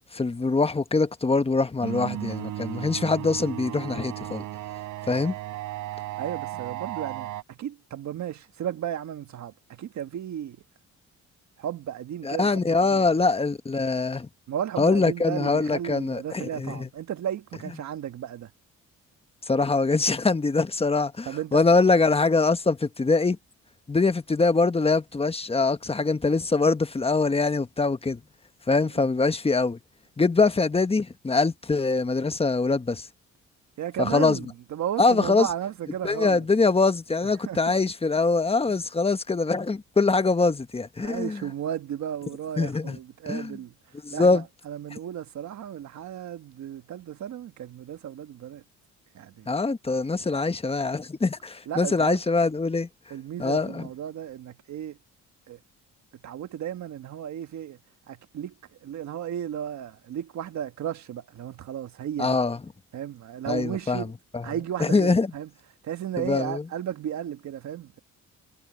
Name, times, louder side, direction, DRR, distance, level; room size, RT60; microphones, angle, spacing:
voice 1, 0.1-4.4 5.1-5.3 12.2-14.3 14.8-16.9 19.5-23.4 23.9-28.2 28.7-29.8 30.2-33.1 34.0-34.4 35.0-35.5 36.0-41.4 42.6-43.0 43.3-43.6 44.0-44.4 49.5-52.9 53.4-53.9 62.2-62.6 63.5-64.1 64.3-64.5 64.8-65.3 66.2-66.6, left 3 dB, 20° left, 1.3 m, -23 dB
sound 1, 1.8-7.4, right 14 dB, 85° right, 4.2 m, -35 dB
voice 2, 6.2-10.6 11.6-13.1 14.5-18.5 21.2-21.6 29.0-29.1 33.8-36.4 37.4-37.7 41.0-43.7 44.1-48.6 49.1-49.5 51.7-52.2 53.1-55.0 55.5-55.6 56.2-57.8 58.1-58.5 58.8-62.4 62.9-64.1 64.4-65.5 65.8-68.0, right 10 dB, 65° right, 1.6 m, -34 dB
cardioid pair, 90°, 30 cm